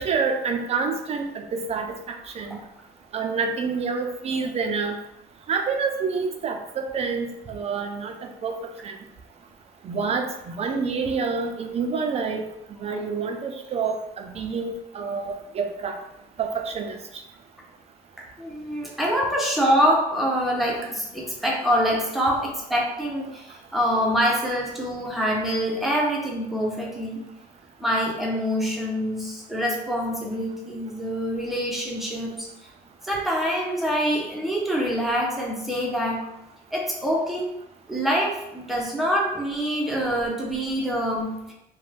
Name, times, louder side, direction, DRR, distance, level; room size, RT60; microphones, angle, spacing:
voice 1, 0.0-2.6 3.1-5.0 5.5-8.6 8.8-8.9 9.8-12.5 12.8-15.9 16.4-17.0, right 5 dB, 40° right, 4 dB, 0.4 m, -28 dB
voice 2, 18.4-27.2 27.8-32.5 33.0-36.3 36.7-37.5 37.9-41.4, equal, ahead, -3 dB, 0.7 m, -25 dB
2.5 x 2.2 x 3.2 m, 0.84 s
cardioid pair, 110°, 17 cm